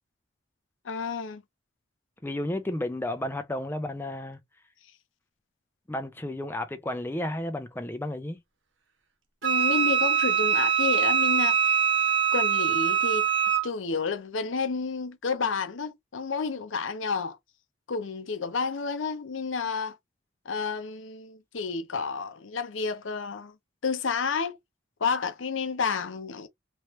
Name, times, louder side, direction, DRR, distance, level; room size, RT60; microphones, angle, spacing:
voice 1, 0.8-1.4 9.4-11.8 12.3-13.3 13.6-17.4 17.9-20.0 20.5-23.5 23.8-24.6 25.0-26.5, left 5 dB, 85° left, 0.7 m, -30 dB
voice 2, 2.2-4.4 5.9-8.4, left 1 dB, 10° left, 0.5 m, -32 dB
Wind instrument woodwind instrument, 9.4-13.7, right 7 dB, 70° right, 1.0 m, -23 dB
3.1 x 2.9 x 3.1 m
head